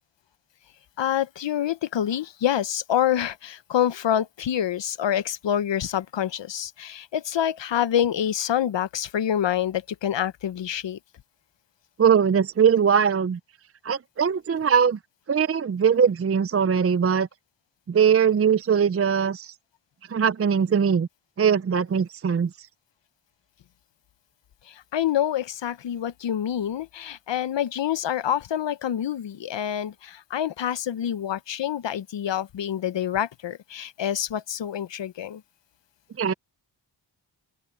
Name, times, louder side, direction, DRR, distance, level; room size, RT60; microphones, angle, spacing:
voice 1, 1.0-11.0 24.7-35.4, left 10 dB, 75° left, 0.8 m, -27 dB
voice 2, 12.0-13.4 13.8-15.0 15.3-17.3 17.9-19.5 20.1-21.1 21.4-22.7 36.2-36.3, right 7 dB, 35° right, 0.4 m, -21 dB
open air
wide cardioid pair, 150°, 44 cm